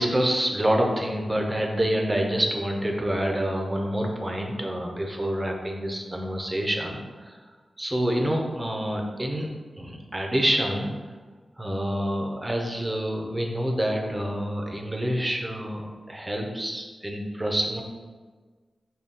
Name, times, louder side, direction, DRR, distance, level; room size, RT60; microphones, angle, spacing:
voice 1, 0.0-7.4 7.8-10.9 11.6-17.8, equal, 20° right, 1 dB, 0.6 m, -27 dB
3.9 x 2.3 x 3.6 m, 1.4 s
cardioid pair, 55°, 0 cm